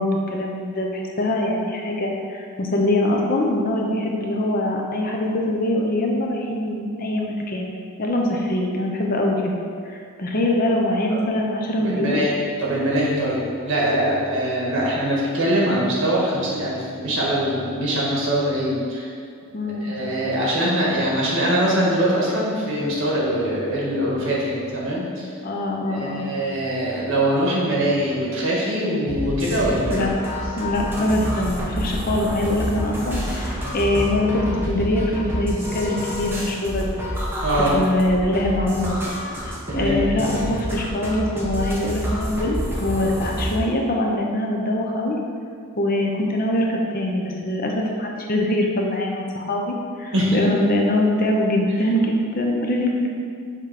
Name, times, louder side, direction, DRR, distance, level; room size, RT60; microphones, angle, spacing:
voice 1, 0.0-7.7 8.0-12.2 19.5-19.9 25.4-26.2 29.9-30.1 30.6-37.0 37.7-39.0 39.4-45.2 45.8-53.1, left 1 dB, 40° left, 0 dB, 0.6 m, -23 dB
voice 2, 11.8-19.1 19.6-25.3 25.9-30.1 37.4-37.8 39.7-40.0 50.1-50.4, right 1 dB, 60° right, -5 dB, 1.5 m, -23 dB
sound 1, 29.1-43.6, equal, 10° right, 0.8 m, -28 dB
6.9 x 3.0 x 4.8 m, 2.2 s
head